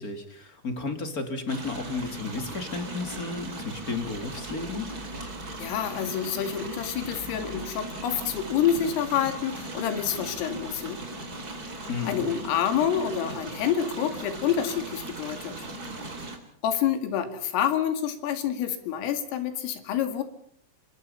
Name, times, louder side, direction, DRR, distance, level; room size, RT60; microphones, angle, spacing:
voice 1, 0.0-4.9 11.9-12.3, left 4 dB, 30° left, 7 dB, 1.8 m, -33 dB
sound 1, 1.5-16.4, right 2 dB, 20° right, 3.2 m, -38 dB
voice 2, 5.6-11.0 11.8-15.6 16.6-20.2, left 9 dB, 80° left, 9 dB, 4.7 m, -28 dB
27.0 x 24.5 x 5.6 m, 0.63 s
omnidirectional pair, 5.8 m